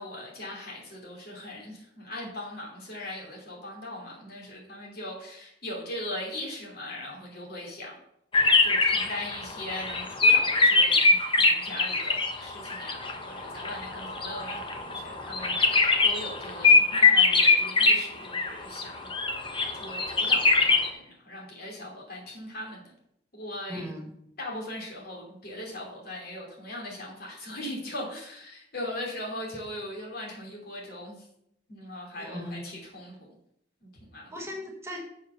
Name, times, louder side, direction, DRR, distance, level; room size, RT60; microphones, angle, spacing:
voice 1, 0.0-8.0 8.6-19.1 19.8-22.9 23.3-23.9 24.4-31.2 31.7-33.3 33.8-34.3, left 1 dB, 55° left, -1 dB, 2.8 m, -39 dB
sound 1, 8.3-12.4 12.7-18.0 18.3-18.8 19.1-20.9, left 3 dB, 30° left, 0.9 m, -22 dB
voice 2, 23.7-24.1 32.2-32.7 34.3-35.0, left 1 dB, 15° right, -1 dB, 1.4 m, -38 dB
7.2 x 4.7 x 6.7 m, 0.74 s
head